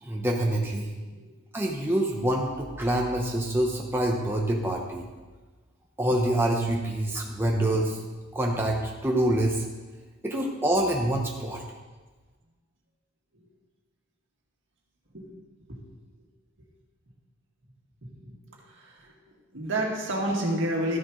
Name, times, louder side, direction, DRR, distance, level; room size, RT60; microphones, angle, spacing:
voice 1, 0.0-0.9 1.5-5.1 6.0-8.0 8.3-9.6 10.2-11.6, right 1 dB, 10° right, -1 dB, 0.9 m, -26 dB
voice 2, 18.6-19.1 19.5-21.0, right 1 dB, 65° right, -1 dB, 2.1 m, -30 dB
13.0 x 9.9 x 3.2 m, 1.3 s
head